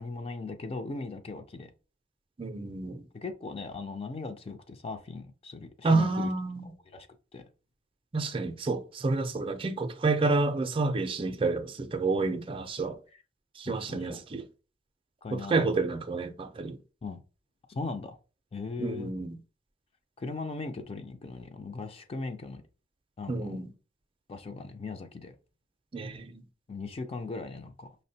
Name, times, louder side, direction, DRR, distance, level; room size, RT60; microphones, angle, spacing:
voice 1, 0.0-1.7 3.1-6.3 6.9-7.1 7.3-7.4 13.1-13.2 13.7-14.2 15.2-15.8 17.0-17.2 17.7-18.2 18.5-19.1 20.2-22.6 23.2-23.6 24.3-25.3 26.7-27.9, left 3 dB, 35° left, 0.4 m, -38 dB
voice 2, 2.4-3.0 5.8-6.7 8.1-13.0 13.6-14.4 15.3-16.8 18.8-19.4 23.3-23.7 25.9-26.4, right 3 dB, 30° right, 0.4 m, -29 dB
5.6 x 2.1 x 2.7 m
head